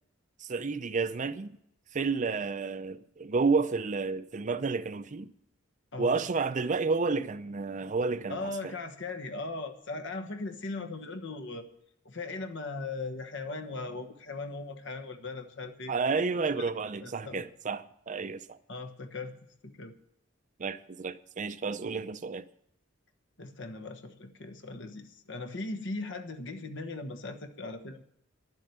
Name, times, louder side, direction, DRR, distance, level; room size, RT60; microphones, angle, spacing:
voice 1, 0.4-1.6 1.9-5.3 6.0-8.7 15.9-18.6 20.6-22.4, right 4 dB, 40° right, 0.5 m, -31 dB
voice 2, 8.3-11.7 12.0-15.9 16.3-16.7 17.0-17.4 18.7-19.3 19.6-19.9 23.4-28.0, left 3 dB, 65° left, 1.3 m, -39 dB
11.0 x 7.5 x 9.3 m
head